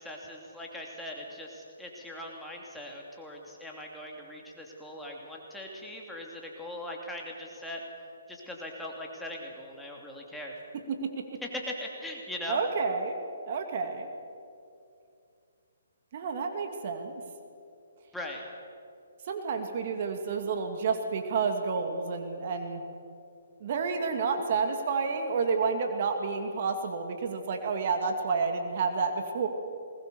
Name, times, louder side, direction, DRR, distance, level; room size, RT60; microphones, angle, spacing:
voice 1, 0.0-7.8 8.3-10.5 11.5-12.6 18.1-18.4, left 1 dB, 5° left, -1 dB, 2.8 m, -40 dB
voice 2, 12.5-13.2 13.5-14.1 16.1-17.2 19.3-22.8 23.6-29.5, right 5 dB, 45° right, 5 dB, 2.3 m, -30 dB
20.5 x 19.5 x 7.0 m, 2.5 s
hypercardioid pair, 150°, 0 cm